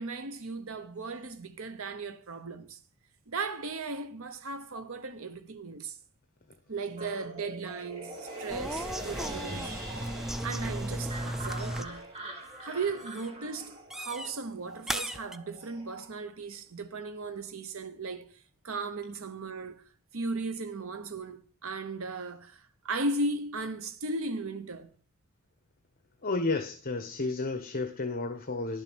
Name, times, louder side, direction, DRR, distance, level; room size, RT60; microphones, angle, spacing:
voice 1, 0.0-2.8 3.3-6.0 6.7-10.1 10.4-12.1 12.6-19.8 20.1-24.9, right 3 dB, 65° right, 0.9 m, -36 dB
sound 1, 7.0-16.1, right 2 dB, 30° right, 2.7 m, -46 dB
sound 2, 7.8-14.3 14.8-14.9, right 1 dB, 45° right, 4.0 m, -46 dB
sound 3, 8.5-12.0 12.3-12.7 13.0-13.3 13.9-14.3 14.9-15.4, equal, ahead, 0.5 m, -36 dB
voice 2, 26.2-28.8, left 3 dB, 40° left, 1.0 m, -32 dB
11.5 x 7.2 x 6.2 m
head